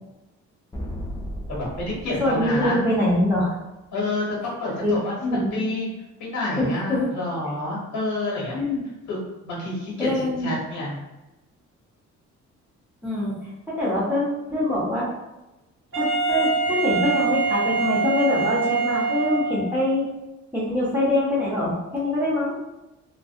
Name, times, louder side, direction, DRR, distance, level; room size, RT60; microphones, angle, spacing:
sound 1, 0.7-3.4, equal, 10° left, 0.4 m, -35 dB
voice 1, 1.5-2.8 3.9-5.2 5.5-5.9 6.2-8.6 9.1-9.2 9.4-11.0, left 2 dB, 70° left, -5 dB, 1.3 m, -28 dB
voice 2, 2.2-3.5 4.8-5.5 6.6-7.0 8.5-8.8 10.0-10.5 13.0-13.5 13.8-15.1 15.9-20.1 20.5-22.5, left 1 dB, 5° right, -8 dB, 1.0 m, -24 dB
Wind instrument woodwind instrument, 15.9-19.9, right 4 dB, 40° right, 0.8 m, -24 dB
2.4 x 2.3 x 2.4 m, 1.0 s
cardioid pair, 90°, 30 cm